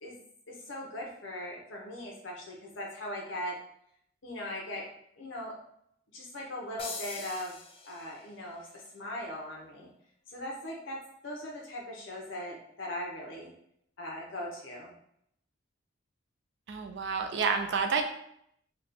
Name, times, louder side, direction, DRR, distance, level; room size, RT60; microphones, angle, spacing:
voice 1, 0.5-3.5 4.2-4.8 5.2-5.5 6.1-7.6 7.8-9.9 10.3-11.0 11.2-13.5 14.0-14.9, left 1 dB, 70° left, -2 dB, 0.8 m, -39 dB
sound 1, 6.8-8.4, left 4 dB, 30° left, 0.4 m, -43 dB
voice 2, 16.7-18.0, right 5 dB, 60° right, 6 dB, 0.4 m, -29 dB
3.3 x 2.3 x 4.1 m, 0.72 s
head